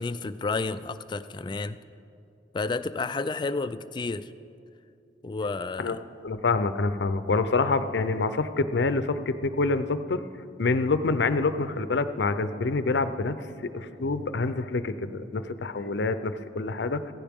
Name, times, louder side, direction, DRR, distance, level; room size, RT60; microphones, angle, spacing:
voice 1, 0.0-1.8 2.5-4.3 5.2-6.0, left 3 dB, 25° left, 11 dB, 0.3 m, -31 dB
voice 2, 6.2-10.3 10.6-13.4 13.7-17.1, left 3 dB, 75° left, 11 dB, 0.6 m, -26 dB
16.0 x 15.0 x 3.6 m, 2.6 s
head